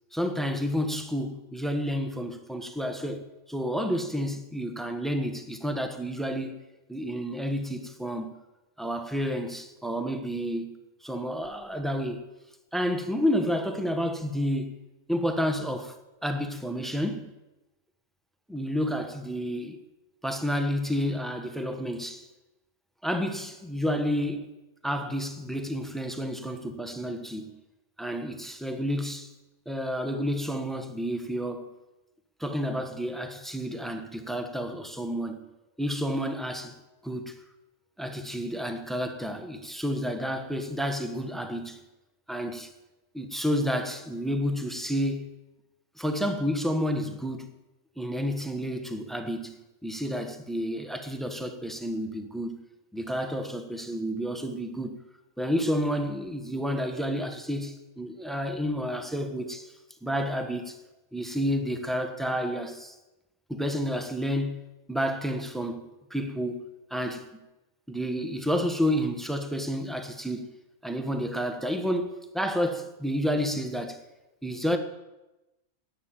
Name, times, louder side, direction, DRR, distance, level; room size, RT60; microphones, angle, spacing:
voice 1, 0.1-3.2 3.5-6.6 6.9-8.3 8.8-12.2 12.7-14.7 15.1-15.9 16.2-17.3 18.5-19.8 20.2-22.3 23.0-24.5 24.8-27.5 28.0-29.3 29.7-31.7 32.4-35.5 35.8-36.8 37.0-37.3 38.0-41.8 42.3-42.7 43.1-45.3 46.0-47.5 48.0-52.6 52.9-55.0 55.4-59.7 60.0-60.8 61.1-62.9 63.5-64.6 64.9-67.4 67.9-70.5 70.8-74.0 74.4-74.8, equal, ahead, 1.1 m, -30 dB
11.0 x 9.5 x 9.1 m
omnidirectional pair, 1.4 m